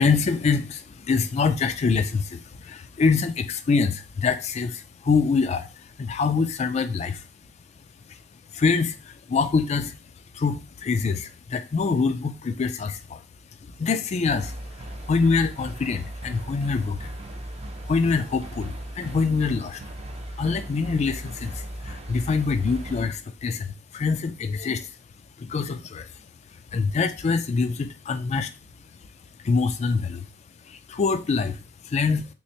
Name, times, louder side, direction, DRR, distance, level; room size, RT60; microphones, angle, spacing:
voice 1, 0.0-7.2 8.5-10.0 10.3-13.2 13.8-17.1 17.8-19.8 20.4-24.9 25.4-26.1 26.7-28.5 29.4-30.3 30.7-31.6 31.8-32.3, left 4 dB, 35° left, 0.3 m, -25 dB
sound 1, 14.2-23.1, right 1 dB, 35° right, 0.5 m, -37 dB
3.4 x 3.1 x 2.8 m
head